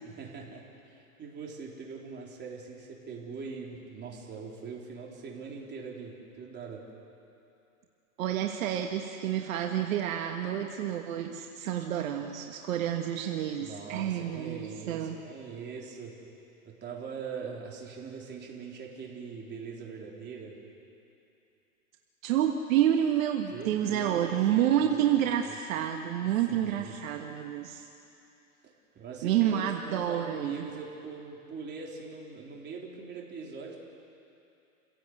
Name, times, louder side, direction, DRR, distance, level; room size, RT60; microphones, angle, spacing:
voice 1, 0.0-6.9 13.6-16.2 16.6-20.6 23.5-25.5 26.5-26.9 29.0-33.8, right 5 dB, 25° right, -2 dB, 4.1 m, -42 dB
voice 2, 8.2-15.2 22.2-27.9 29.2-30.6, right 10 dB, 65° right, 3 dB, 1.6 m, -29 dB
28.0 x 17.0 x 8.0 m, 2.8 s
hypercardioid pair, 125°, 44 cm